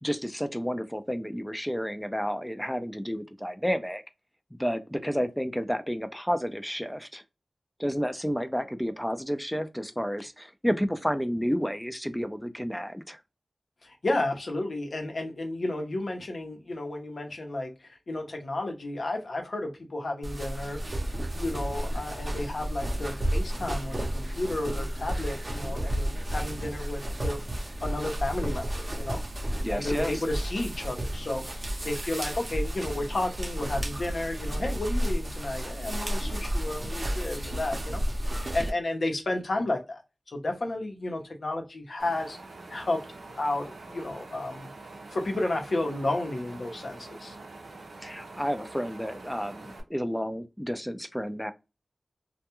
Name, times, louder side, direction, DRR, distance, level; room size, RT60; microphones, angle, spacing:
voice 1, 0.0-4.0 4.6-7.2 7.8-13.2 29.6-30.2 48.0-51.5, equal, 5° left, 0.4 m, -31 dB
voice 2, 13.8-27.4 27.8-40.0 40.3-42.4 42.7-43.0 43.4-44.7 45.1-47.4, left 2 dB, 70° left, 0.8 m, -32 dB
sound 1, 20.2-38.7, right 1 dB, 45° right, 0.7 m, -32 dB
Wind, 42.0-49.8, right 2 dB, 85° right, 0.5 m, -45 dB
2.2 x 2.2 x 2.9 m
cardioid pair, 40°, 0 cm